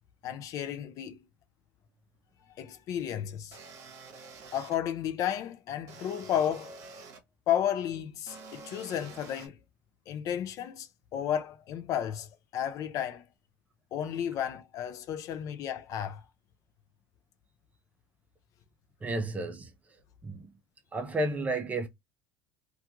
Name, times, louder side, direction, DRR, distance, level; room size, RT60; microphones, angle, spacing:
voice 1, 0.2-1.2 2.6-3.6 4.5-6.7 7.5-9.6 10.1-13.2 13.9-16.2, left 10 dB, 50° left, 0.4 m, -33 dB
sound 1, 3.5-4.8 5.9-7.2 8.3-9.5, right 4 dB, 50° right, 0.9 m, -48 dB
voice 2, 19.0-19.7 20.2-20.5 20.9-21.9, right 2 dB, 20° right, 0.6 m, -32 dB
2.3 x 2.3 x 2.8 m
supercardioid pair, 120°, 7 cm